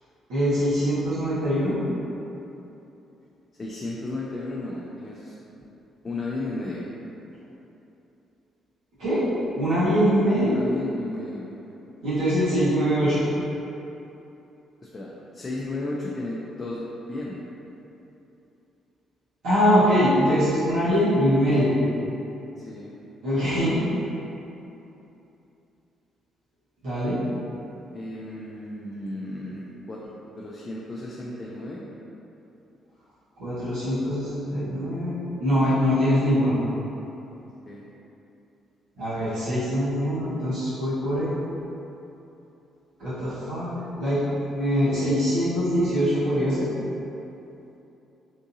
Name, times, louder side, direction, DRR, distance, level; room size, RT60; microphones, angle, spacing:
voice 1, 0.3-1.8 9.0-9.2 9.6-10.5 12.0-13.2 19.4-21.7 23.2-23.8 26.8-27.2 33.4-35.1 35.4-36.5 39.0-41.3 43.0-44.2 44.5-46.6, equal, 85° right, -15 dB, 1.2 m, -23 dB
voice 2, 3.6-5.4 6.0-6.8 10.4-11.5 14.8-17.4 20.8-21.0 22.6-22.9 27.9-30.0 30.4-31.8 37.7-37.8, left 2 dB, 30° left, -5 dB, 0.4 m, -34 dB
3.6 x 2.7 x 2.6 m, 2.9 s
cardioid pair, 80°, 0 cm